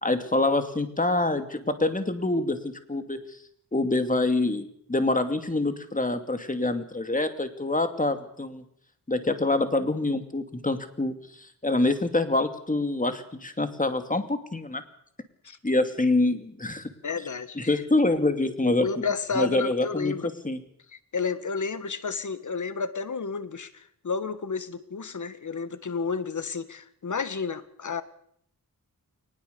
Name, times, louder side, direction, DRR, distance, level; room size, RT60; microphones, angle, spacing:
voice 1, 0.0-3.2 3.7-8.6 9.1-14.8 15.6-16.9 17.6-19.0 19.4-20.6, left 2 dB, 20° left, 8 dB, 2.6 m, -26 dB
voice 2, 17.0-17.8 18.2-18.3 18.6-20.3 20.9-28.0, left 5 dB, 55° left, 12 dB, 1.7 m, -31 dB
22.5 x 20.0 x 7.0 m, 0.68 s
wide cardioid pair, 80°, 36 cm